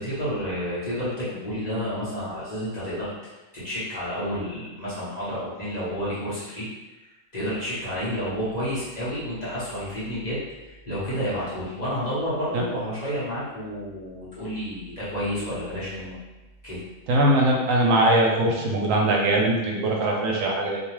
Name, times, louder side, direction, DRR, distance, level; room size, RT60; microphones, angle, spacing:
voice 1, 0.0-3.1 3.5-6.7 7.3-16.2 16.6-16.8, equal, 35° left, -11 dB, 0.9 m, -30 dB
voice 2, 17.1-20.8, right 1 dB, 80° right, -1 dB, 1.0 m, -21 dB
2.6 x 2.2 x 3.1 m, 1.1 s
omnidirectional pair, 1.4 m